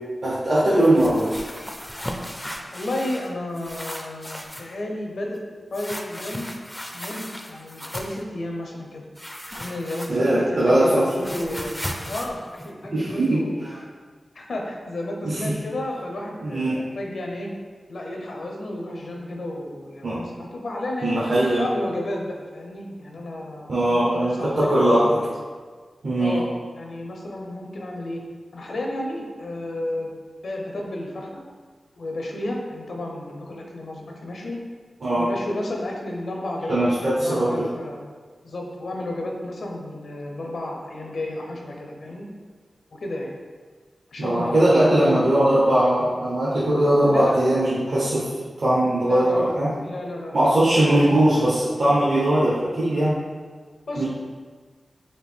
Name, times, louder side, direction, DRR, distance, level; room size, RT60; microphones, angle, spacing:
voice 1, 0.2-1.4 10.1-11.1 12.9-13.4 15.2-15.6 16.4-16.8 20.0-20.2 21.0-21.7 23.7-25.2 26.0-26.4 35.0-35.3 36.7-37.7 44.2-49.7 50.3-53.2 54.0-54.1, right 1 dB, 65° right, -9 dB, 0.9 m, -20 dB
sound 1, 0.8-3.3 3.6-4.7 5.7-8.2 9.2-10.5 10.7-13.4, equal, 5° left, 0.4 m, -36 dB
voice 2, 2.7-5.4 5.7-6.5 6.9-9.1 9.6-11.7 12.0-13.8 14.3-17.5 17.9-21.2 21.6-25.3 26.2-28.2 28.5-30.1 30.4-31.4 32.0-34.6 35.1-38.0 38.4-42.3 42.9-43.3 44.1-45.4 47.1-47.4 49.0-49.5 49.8-50.5 50.8-51.6 53.9-54.0, left 1 dB, 80° left, 0 dB, 0.6 m, -32 dB
4.3 x 2.6 x 3.5 m, 1.5 s
wide cardioid pair, 100°, 0 cm